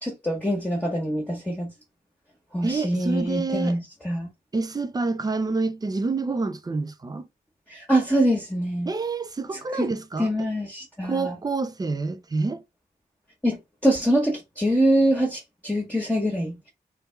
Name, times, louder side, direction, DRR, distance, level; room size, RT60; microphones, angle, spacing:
voice 1, 0.0-1.7 2.5-4.3 7.7-8.9 9.7-9.9 10.2-11.3 13.4-16.7, right 1 dB, 10° left, 1.2 m, -24 dB
voice 2, 2.6-3.8 4.5-7.3 8.9-10.3 11.0-12.6, right 3 dB, 25° right, 0.5 m, -27 dB
3.3 x 3.3 x 4.5 m
wide cardioid pair, 165°, 17 cm